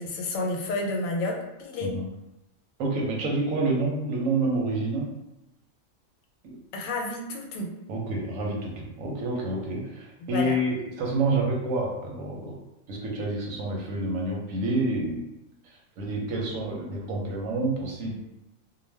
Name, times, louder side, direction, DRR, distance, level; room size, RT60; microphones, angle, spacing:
voice 1, 0.0-1.9 6.7-7.7 10.2-10.6, left 2 dB, 90° left, 1 dB, 1.0 m, -30 dB
voice 2, 2.8-5.1 6.4-6.6 7.9-12.6 12.9-15.2 15.6-18.1, right 2 dB, 85° right, -1 dB, 1.1 m, -28 dB
2.4 x 2.2 x 3.3 m, 0.93 s
omnidirectional pair, 1.3 m